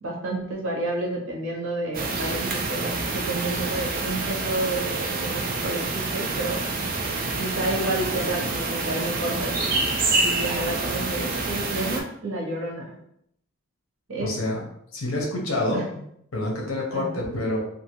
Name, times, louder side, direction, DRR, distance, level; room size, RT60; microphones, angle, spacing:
voice 1, 0.0-6.6 7.4-9.9 10.2-12.9 14.1-14.4 15.7-15.8 16.9-17.2, right 2 dB, 65° right, -2 dB, 0.9 m, -30 dB
sound 1, 1.9-12.0, right 3 dB, 40° right, 0.3 m, -27 dB
voice 2, 14.2-14.6 14.9-16.0 16.3-17.6, left 1 dB, 65° left, -1 dB, 0.8 m, -27 dB
2.8 x 2.5 x 2.9 m, 0.72 s
head